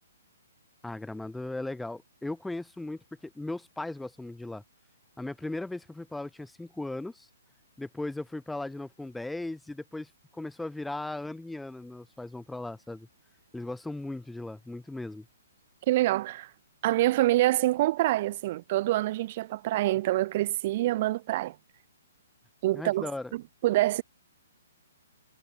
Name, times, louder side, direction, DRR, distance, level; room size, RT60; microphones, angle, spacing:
voice 1, 0.8-4.6 5.2-7.3 7.8-13.1 13.5-15.3 22.7-23.3, left 2 dB, 5° left, 2.6 m, -37 dB
voice 2, 15.9-16.5 16.8-21.5 22.6-24.0, right 16 dB, 40° right, 2.2 m, -26 dB
figure-of-eight pair, 125°, 0 cm